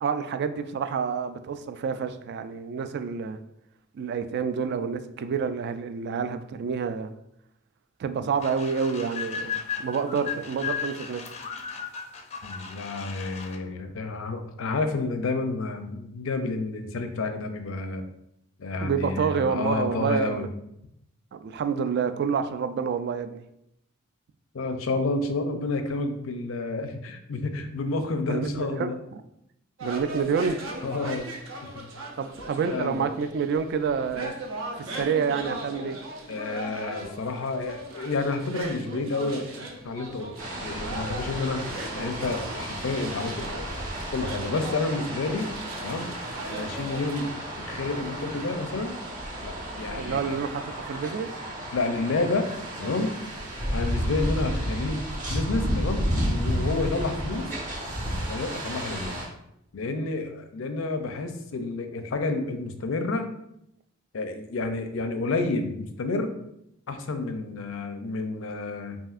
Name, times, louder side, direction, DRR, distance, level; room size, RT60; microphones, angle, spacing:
voice 1, 0.0-3.4 3.9-7.1 8.0-11.3 18.8-20.5 21.3-23.4 28.3-29.2 29.8-30.6 32.2-34.3 34.8-36.0 50.0-50.6 50.9-51.3, right 6 dB, 55° right, 0.3 m, -28 dB
sound 1, 8.4-13.6, left 7 dB, 30° left, 0.4 m, -35 dB
voice 2, 12.4-18.0 18.6-20.5 24.5-29.0 30.8-31.3 31.6-31.9 32.7-33.1 36.3-40.3 40.6-43.5 44.1-45.5 45.8-46.1 46.5-49.0 49.4-50.4 51.7-52.5 52.8-53.2 53.7-57.5 58.3-59.2 59.7-63.3 64.1-66.4 66.9-69.0, left 3 dB, 85° left, 0.5 m, -30 dB
sound 2, 29.8-47.3, right 1 dB, 80° right, 0.7 m, -39 dB
sound 3, 40.4-59.2, equal, 40° right, 1.0 m, -32 dB
5.6 x 2.6 x 2.5 m
head